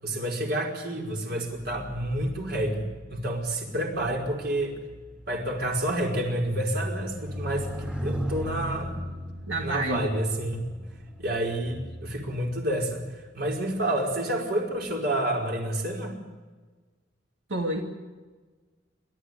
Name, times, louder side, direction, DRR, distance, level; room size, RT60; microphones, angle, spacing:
voice 1, 0.0-4.8 5.3-9.0 9.6-10.6 11.2-13.0 13.3-16.2, right 1 dB, 55° right, 0 dB, 5.2 m, -29 dB
sound 1, 1.5-13.1 13.9-14.1, equal, 5° right, 2.0 m, -37 dB
voice 2, 9.5-10.1 17.5-17.8, right 1 dB, 85° right, 1 dB, 2.4 m, -29 dB
28.0 x 13.5 x 9.8 m, 1.3 s
head